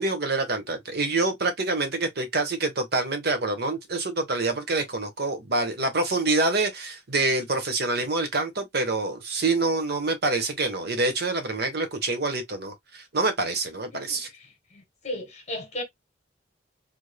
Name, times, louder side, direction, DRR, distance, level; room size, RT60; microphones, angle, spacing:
voice 1, 0.0-14.3, right 3 dB, 60° right, 1.1 m, -26 dB
voice 2, 14.7-15.8, left 1 dB, 40° left, 1.5 m, -35 dB
3.5 x 3.3 x 2.2 m
head